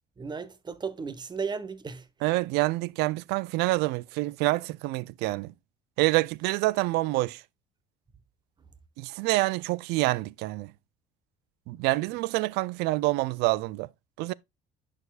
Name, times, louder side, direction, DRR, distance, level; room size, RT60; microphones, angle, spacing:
voice 1, 0.2-2.1, right 5 dB, 25° right, 1.2 m, -35 dB
voice 2, 2.2-5.5 6.0-7.4 9.0-10.7 11.7-13.9 14.2-14.3, right 20 dB, 75° right, 0.4 m, -27 dB
11.0 x 4.9 x 2.4 m
supercardioid pair, 80°, 17 cm